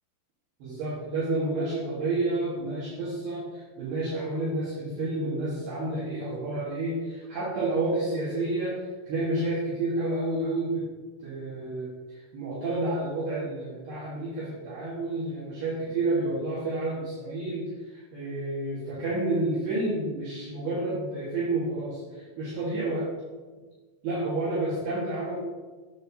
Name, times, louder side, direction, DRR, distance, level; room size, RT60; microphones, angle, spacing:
voice 1, 0.6-10.8 11.2-23.1 24.0-25.4, right 2 dB, 65° right, -9 dB, 3.2 m, -30 dB
9.4 x 7.5 x 2.8 m, 1.4 s
omnidirectional pair, 5.6 m